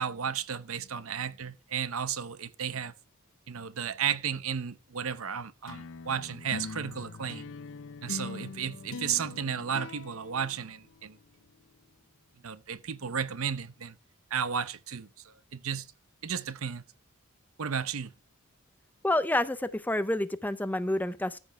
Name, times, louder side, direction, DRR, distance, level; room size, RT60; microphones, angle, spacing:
voice 1, 0.0-2.9 3.5-7.5 8.0-11.2 12.4-14.0 14.3-15.9 16.2-16.8 17.6-18.1, right 7 dB, 70° right, 0.7 m, -33 dB
sound 1, 5.7-11.3, left 4 dB, 60° left, 0.5 m, -42 dB
voice 2, 19.0-21.4, left 1 dB, 10° left, 0.5 m, -28 dB
14.0 x 5.3 x 4.6 m
head